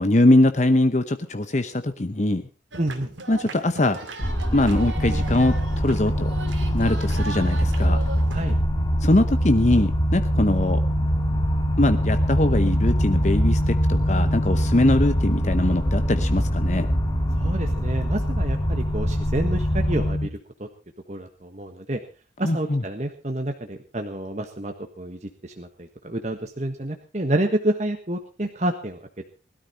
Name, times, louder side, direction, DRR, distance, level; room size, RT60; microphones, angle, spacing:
voice 1, 0.0-2.4 3.3-4.0 4.5-6.3 6.7-8.0 9.0-10.8 11.8-16.9 22.4-22.8, left 1 dB, 40° left, 9 dB, 0.9 m, -22 dB
sound 1, 2.7-8.6, right 3 dB, 90° right, 2.6 m, -37 dB
voice 2, 2.8-3.1 8.3-8.6 17.4-20.7 21.1-22.0 22.4-29.0, right 1 dB, 40° right, 4 dB, 1.4 m, -29 dB
sound 2, 4.2-20.1, equal, 20° left, 2.1 m, -25 dB
sound 3, 5.0-20.3, equal, 60° left, 2.0 m, -26 dB
20.5 x 13.0 x 4.2 m, 0.34 s
head